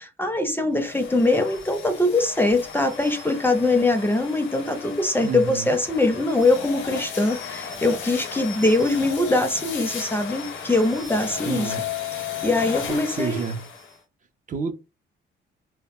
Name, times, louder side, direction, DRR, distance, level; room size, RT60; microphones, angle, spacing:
voice 1, 0.0-11.7 12.1-13.4, left 2 dB, 10° left, 0.5 m, -22 dB
sound 1, 0.8-14.0, left 7 dB, 75° left, 0.7 m, -35 dB
voice 2, 5.2-5.8 11.5-11.8 12.9-13.6 14.5-14.7, right 5 dB, 40° right, 0.5 m, -29 dB
2.1 x 2.1 x 3.5 m
cardioid pair, 90°, 20 cm